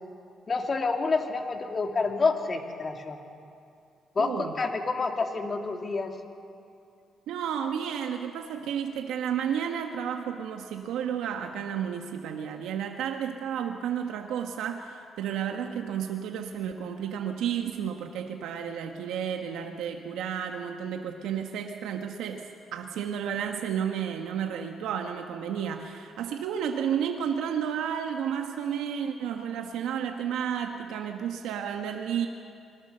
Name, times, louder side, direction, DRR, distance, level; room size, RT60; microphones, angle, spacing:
voice 1, 0.5-3.2 4.1-6.1, left 4 dB, 35° left, 3 dB, 2.6 m, -28 dB
voice 2, 4.2-4.5 7.3-22.4 22.7-32.3, right 8 dB, 90° right, 4 dB, 1.3 m, -32 dB
25.5 x 21.0 x 6.8 m, 2.5 s
cardioid pair, 90°, 0 cm